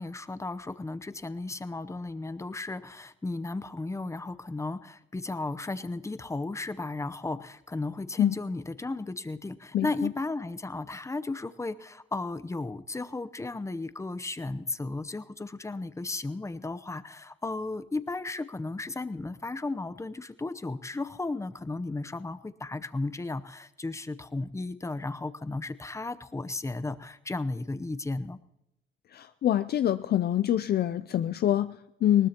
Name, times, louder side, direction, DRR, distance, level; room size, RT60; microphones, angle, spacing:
voice 1, 0.0-28.4, left 2 dB, 15° left, 14 dB, 0.7 m, -34 dB
voice 2, 9.7-10.1 29.1-32.3, left 11 dB, 55° left, 13 dB, 0.4 m, -26 dB
20.5 x 19.0 x 2.9 m, 0.87 s
cardioid pair, 90°, 20 cm